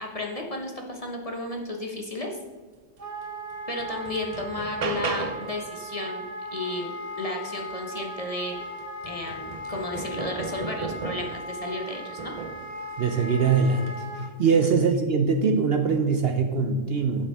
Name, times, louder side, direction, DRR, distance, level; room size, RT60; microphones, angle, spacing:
voice 1, 0.0-2.4 3.7-6.2 6.5-8.6 9.0-12.3 14.4-14.7, left 2 dB, 30° left, 1 dB, 0.9 m, -33 dB
Wind instrument woodwind instrument, 3.0-14.3, equal, 15° right, 1.0 m, -38 dB
sound 1, 3.2-3.3 3.8-5.6 8.0-8.1 8.5-11.5 12.2-12.7 13.8-14.0, right 5 dB, 75° right, 0.3 m, -35 dB
voice 2, 13.0-17.3, right 5 dB, 55° right, 5 dB, 0.7 m, -23 dB
8.6 x 7.4 x 3.5 m, 1.4 s
omnidirectional pair, 1.4 m